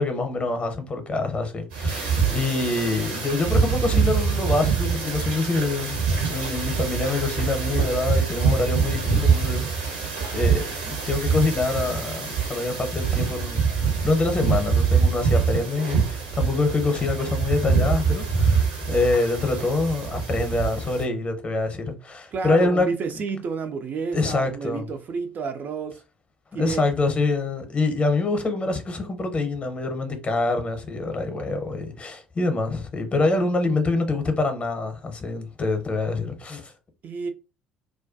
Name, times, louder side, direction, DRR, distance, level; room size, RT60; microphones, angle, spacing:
voice 1, 0.0-6.0 6.2-13.6 14.0-22.9 24.1-24.9 26.6-36.7, left 3 dB, 25° left, 0.7 m, -25 dB
sound 1, 1.7-21.0, right 5 dB, 70° right, 0.8 m, -24 dB
voice 2, 22.3-26.0 26.5-26.8 37.0-37.3, right 5 dB, 40° right, 0.3 m, -30 dB
2.3 x 2.2 x 2.5 m
figure-of-eight pair, 55°, 5 cm